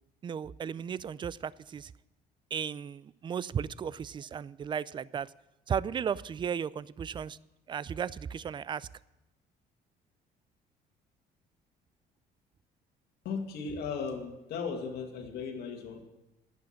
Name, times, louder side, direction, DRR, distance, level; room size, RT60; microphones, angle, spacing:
voice 1, 0.2-1.9 2.5-5.3 5.7-7.4 7.7-8.9, right 7 dB, 30° right, 21 dB, 0.3 m, -35 dB
voice 2, 13.2-16.0, left 5 dB, 75° left, 4 dB, 2.1 m, -36 dB
11.5 x 8.4 x 7.4 m, 0.95 s
cardioid pair, 110°, 17 cm